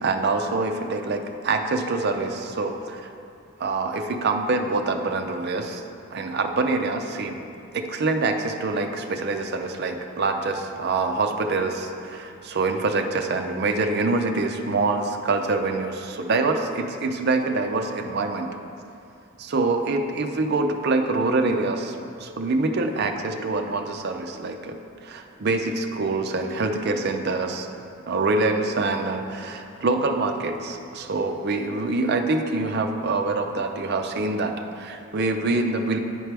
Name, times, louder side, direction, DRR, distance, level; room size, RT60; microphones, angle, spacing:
voice 1, 0.0-3.1 3.6-5.8 6.1-7.4 7.7-18.5 19.4-24.8 25.0-27.7 28.1-36.0, right 3 dB, 50° right, 5 dB, 0.5 m, -25 dB
9.8 x 4.6 x 3.4 m, 2.5 s
head